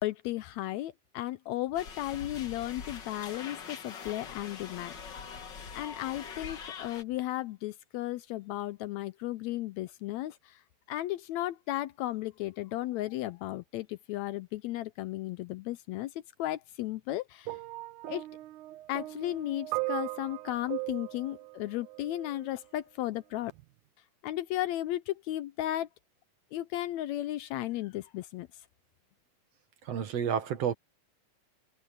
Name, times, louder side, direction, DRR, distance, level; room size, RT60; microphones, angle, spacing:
voice 1, 0.0-4.9 5.7-10.6 10.9-16.1 16.4-17.6 18.1-18.2 18.9-23.5 24.2-25.9 26.5-28.5, left 15 dB, 75° left, 1.7 m, -35 dB
sound 1, 1.7-7.0, left 6 dB, 45° left, 1.8 m, -43 dB
sound 2, 17.5-22.6 23.5-23.6, right 22 dB, 85° right, 2.2 m, -38 dB
voice 2, 29.9-30.7, right 8 dB, 60° right, 2.4 m, -30 dB
omnidirectional pair, 3.5 m